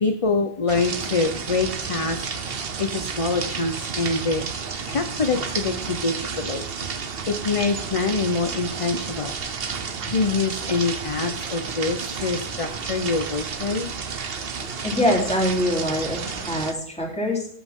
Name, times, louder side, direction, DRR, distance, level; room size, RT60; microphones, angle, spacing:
voice 1, 0.0-2.2 2.5-6.6 7.3-9.3 10.1-13.9, left 4 dB, 35° left, 7 dB, 0.8 m, -25 dB
sound 1, 0.7-16.7, right 5 dB, 60° right, 1.2 m, -31 dB
voice 2, 14.8-17.5, left 1 dB, 5° left, -2 dB, 3.5 m, -24 dB
14.0 x 8.3 x 3.7 m, 0.62 s
omnidirectional pair, 1.1 m